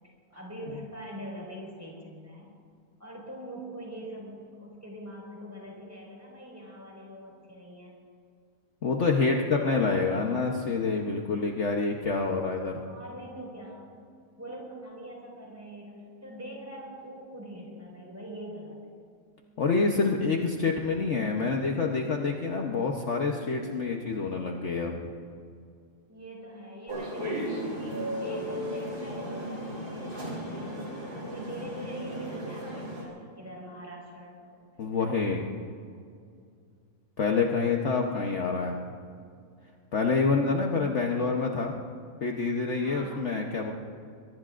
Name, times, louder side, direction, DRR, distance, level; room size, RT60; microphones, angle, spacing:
voice 1, 0.3-2.5 3.0-8.0 9.3-10.4 12.8-13.8 14.4-19.0 26.1-35.1 42.8-43.3, right 1 dB, 10° right, -3 dB, 5.0 m, -43 dB
voice 2, 8.8-12.8 19.6-25.0 34.8-35.4 37.2-38.8 39.9-41.7 42.2-43.7, left 4 dB, 55° left, 1 dB, 1.2 m, -27 dB
sound 1, 26.9-33.0, equal, 70° right, 4.2 m, -35 dB
23.0 x 22.0 x 2.5 m, 2.2 s
omnidirectional pair, 1.6 m